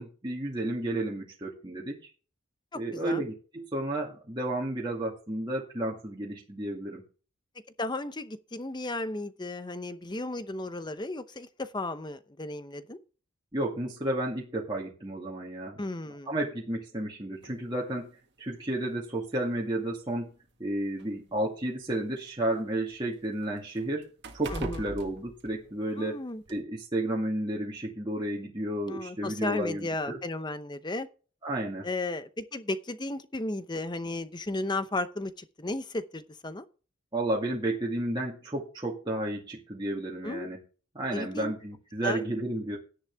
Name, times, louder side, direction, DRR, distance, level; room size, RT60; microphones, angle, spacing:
voice 1, 0.0-2.0 2.7-7.0 13.5-15.8 16.3-18.1 18.4-20.3 20.6-24.1 24.3-30.2 31.4-31.9 37.1-40.6 40.9-42.8, right 1 dB, 20° right, 2.1 m, -32 dB
voice 2, 2.7-3.2 7.8-13.0 15.8-16.3 24.5-24.9 26.0-26.4 28.9-31.1 31.8-36.6 40.2-40.5 41.1-41.5 42.0-42.2, left 2 dB, 20° left, 0.8 m, -34 dB
sound 1, 17.4-17.6 18.6-18.7 19.2-19.3 20.3-22.2 22.6-26.1 26.5-26.6, right 2 dB, 55° right, 1.7 m, -44 dB
11.5 x 10.5 x 3.5 m
head